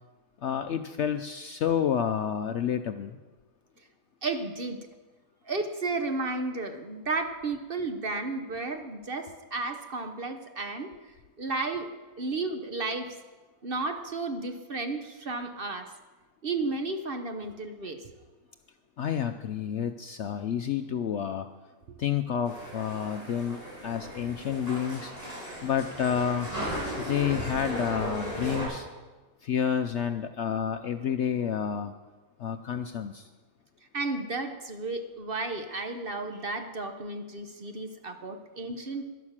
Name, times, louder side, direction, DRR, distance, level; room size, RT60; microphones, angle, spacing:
voice 1, 0.4-3.2 19.0-21.5 22.0-23.6 23.8-25.1 25.6-26.5 27.0-28.9 29.4-31.9 32.4-33.3, left 8 dB, 65° left, 8 dB, 0.7 m, -29 dB
voice 2, 4.2-4.8 5.5-10.9 11.4-11.9 12.2-13.1 13.6-15.9 16.4-18.0 33.9-39.0, right 3 dB, 45° right, 6 dB, 1.0 m, -33 dB
sound 1, 22.4-28.6, right 1 dB, 25° right, 6.4 m, -36 dB
11.5 x 11.0 x 7.3 m, 1.3 s
omnidirectional pair, 1.6 m